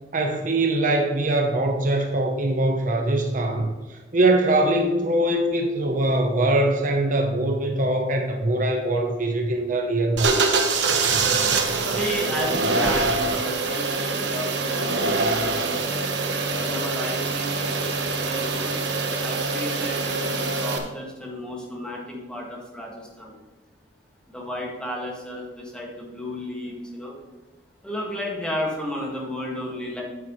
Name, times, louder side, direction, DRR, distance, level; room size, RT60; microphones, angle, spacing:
voice 1, 0.1-3.7 4.1-10.3, right 1 dB, 50° right, 3 dB, 0.9 m, -22 dB
sound 1, 10.1-20.8, right 3 dB, 90° right, 1.1 m, -24 dB
voice 2, 11.8-15.6 16.6-18.8 19.2-23.3 24.3-27.2 27.8-30.0, equal, 5° left, -3 dB, 1.8 m, -33 dB
9.5 x 7.4 x 3.1 m, 1.2 s
head